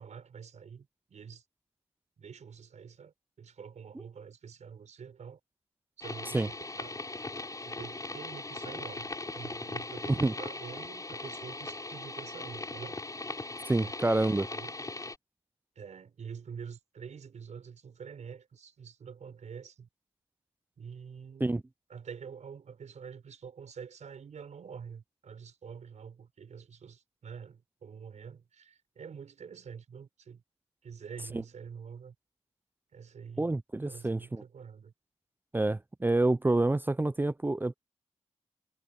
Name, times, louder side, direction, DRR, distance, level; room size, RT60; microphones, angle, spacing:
voice 1, 0.0-1.5 2.2-5.4 6.0-7.0 7.7-13.0 13.8-14.1 14.5-14.7 15.8-19.9 20.8-21.5 21.9-30.4 30.8-32.2 32.9-33.5 33.8-34.9, right 6 dB, 80° right, 5.3 m, -46 dB
sound 1, 6.0-15.2, left 2 dB, 30° left, 6.4 m, -39 dB
voice 2, 13.7-14.5 21.4-21.6 33.4-34.4 35.5-37.7, right 2 dB, 15° right, 0.5 m, -27 dB
cardioid pair, 80°, 12 cm